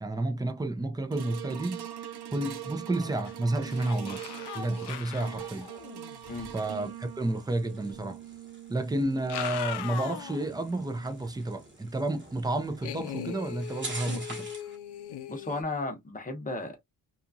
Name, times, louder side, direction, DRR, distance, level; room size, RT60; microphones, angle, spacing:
voice 1, 0.0-1.9 2.3-4.2 4.5-5.7 6.5-8.2 8.7-14.5, right 2 dB, 10° right, 0.4 m, -31 dB
sound 1, 1.1-11.5 12.1-12.2, right 11 dB, 75° right, 0.6 m, -43 dB
sound 2, 2.9-3.3 3.6-6.5 7.9-8.0 9.1-10.5 11.0-11.1 12.8-15.6, left 10 dB, 75° left, 0.5 m, -40 dB
sound 3, 4.3-14.8, right 2 dB, 30° right, 1.0 m, -48 dB
voice 2, 15.3-16.8, left 2 dB, 20° left, 0.7 m, -34 dB
2.8 x 2.3 x 2.6 m
wide cardioid pair, 165°, 40 cm